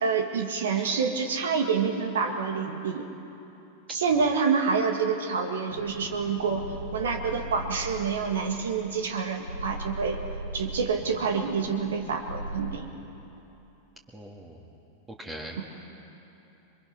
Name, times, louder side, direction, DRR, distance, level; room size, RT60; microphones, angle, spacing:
voice 1, 0.0-3.0 3.9-6.6 6.9-10.2 10.5-12.9, right 5 dB, 65° right, 4 dB, 1.9 m, -27 dB
sound 1, 5.7-12.8, right 1 dB, 90° left, 3.4 m, -39 dB
voice 2, 14.1-14.6 15.2-15.6, right 1 dB, 15° right, -1 dB, 2.3 m, -41 dB
28.0 x 23.0 x 6.1 m, 2.9 s
figure-of-eight pair, 90°, 0 cm